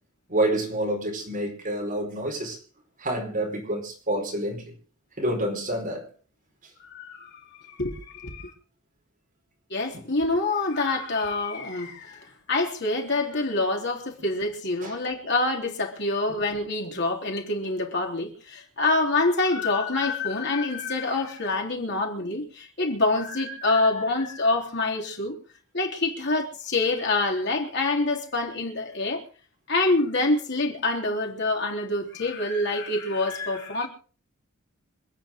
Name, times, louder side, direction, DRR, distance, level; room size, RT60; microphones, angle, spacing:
voice 1, 0.3-2.6 3.0-4.7 5.2-6.1 9.9-10.0 14.8-15.0, right 1 dB, 40° right, 4.8 m, -28 dB
voice 2, 6.8-8.5 9.7-25.4 25.7-29.2 29.7-33.9, left 2 dB, 60° left, 3.6 m, -26 dB
26.5 x 9.2 x 3.8 m
head